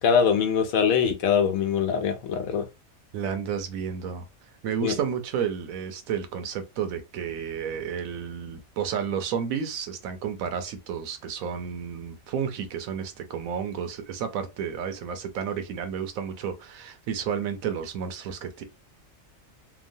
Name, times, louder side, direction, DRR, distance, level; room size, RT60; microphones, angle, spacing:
voice 1, 0.0-2.7 4.8-5.0, left 7 dB, 85° left, 1.1 m, -23 dB
voice 2, 3.1-4.3 4.6-18.6, right 7 dB, 80° right, 1.0 m, -31 dB
2.9 x 2.2 x 2.6 m
omnidirectional pair, 1.4 m